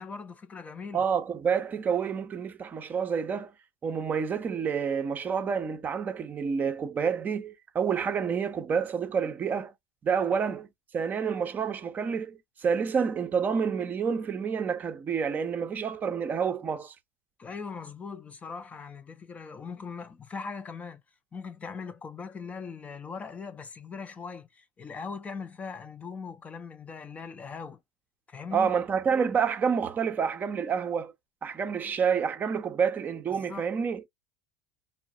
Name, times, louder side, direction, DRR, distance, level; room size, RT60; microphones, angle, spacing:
voice 1, 0.0-1.0 17.4-21.0 21.3-27.8 28.3-28.8 33.4-33.7, left 5 dB, 20° left, 0.4 m, -40 dB
voice 2, 0.9-3.5 3.8-9.7 10.0-10.7 10.9-16.9 28.5-31.1 31.4-34.0, right 6 dB, 30° right, 0.5 m, -28 dB
4.5 x 2.1 x 2.5 m
figure-of-eight pair, 75°, 6 cm